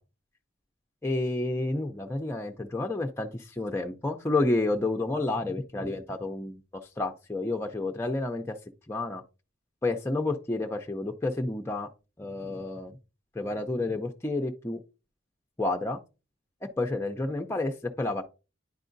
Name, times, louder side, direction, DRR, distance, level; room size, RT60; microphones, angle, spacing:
voice 1, 1.0-6.6 7.0-8.5 8.9-9.2 9.8-11.9 12.2-13.0 13.4-14.8 15.6-16.0 16.8-17.7 18.0-18.2, left 2 dB, 15° left, 3 dB, 0.5 m, -30 dB
9.9 x 4.7 x 2.6 m, 0.31 s
head